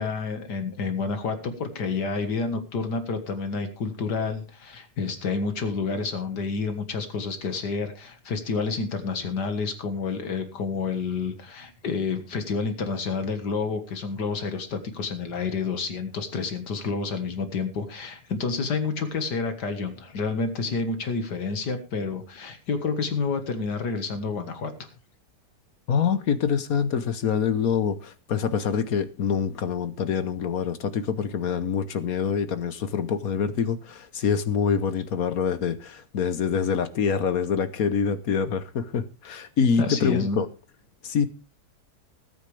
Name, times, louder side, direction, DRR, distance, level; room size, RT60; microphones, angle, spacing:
voice 1, 0.0-24.7 39.8-40.4, left 4 dB, 80° left, 2.2 m, -29 dB
voice 2, 25.9-40.5 41.0-41.3, left 6 dB, 60° left, 1.4 m, -25 dB
19.5 x 9.3 x 3.3 m
omnidirectional pair, 1.8 m